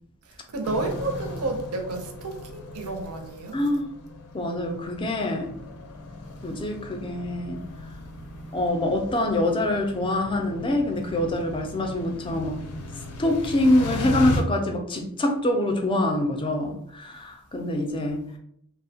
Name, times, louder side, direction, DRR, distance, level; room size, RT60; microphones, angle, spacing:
voice 1, 0.2-3.6, right 2 dB, 70° right, 0.5 m, -31 dB
sound 1, 0.6-14.4, left 1 dB, 80° left, 0.5 m, -37 dB
voice 2, 3.5-3.9 4.3-5.5 6.4-7.6 8.5-12.6 13.2-18.2, left 1 dB, 20° left, 0.3 m, -25 dB
2.7 x 2.0 x 2.7 m
head